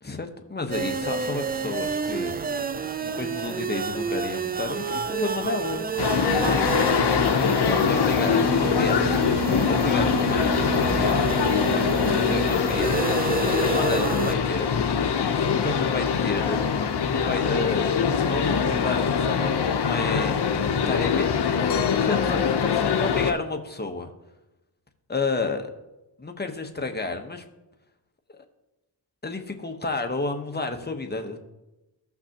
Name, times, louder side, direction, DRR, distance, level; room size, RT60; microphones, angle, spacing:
voice 1, 0.0-2.4 3.0-6.1 6.4-6.7 7.4-9.2 9.7-13.2 13.7-16.6 17.1-24.1 25.1-25.7 26.2-27.4 29.2-31.4, left 3 dB, 20° left, 5 dB, 1.1 m, -31 dB
sound 1, 0.7-14.4, right 4 dB, 20° right, 0.4 m, -29 dB
sound 2, 6.0-23.3, left 6 dB, 60° left, 0.9 m, -23 dB
15.0 x 5.9 x 2.9 m, 1.0 s
cardioid pair, 55°, 45 cm